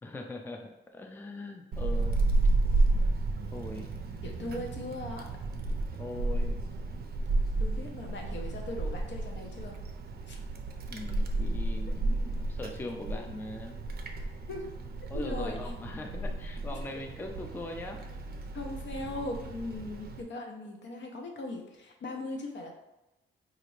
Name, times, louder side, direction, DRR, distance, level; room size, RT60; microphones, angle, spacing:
voice 1, 0.0-2.3 3.5-3.9 6.0-6.6 10.9-13.8 15.1-18.0, left 2 dB, 10° left, 3 dB, 0.3 m, -41 dB
Wind, 1.7-20.2, right 2 dB, 50° right, 0.5 m, -32 dB
voice 2, 4.2-5.2 7.6-9.8 10.3-10.4 14.5-14.7 15.1-15.7 16.7-16.8 18.5-22.7, left 2 dB, 65° left, 2 dB, 0.7 m, -39 dB
4.0 x 2.5 x 3.1 m, 0.98 s
cardioid pair, 110°, 20 cm